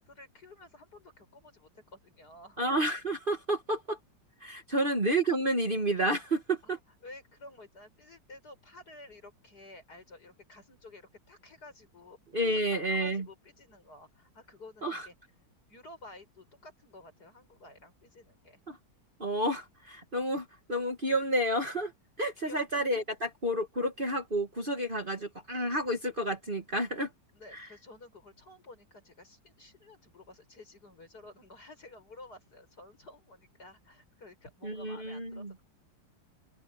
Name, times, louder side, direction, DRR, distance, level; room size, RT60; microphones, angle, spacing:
voice 1, 0.0-2.6 4.7-5.0 6.6-15.2 15.7-18.6 22.4-22.6 27.3-35.6, left 2 dB, 55° left, 7.6 m, -52 dB
voice 2, 2.6-4.0 4.4-6.8 12.3-13.3 14.8-15.1 18.7-18.8 19.2-21.9 22.2-27.1 27.5-27.7 34.6-35.5, right 1 dB, 30° right, 1.9 m, -30 dB
open air
omnidirectional pair, 2.0 m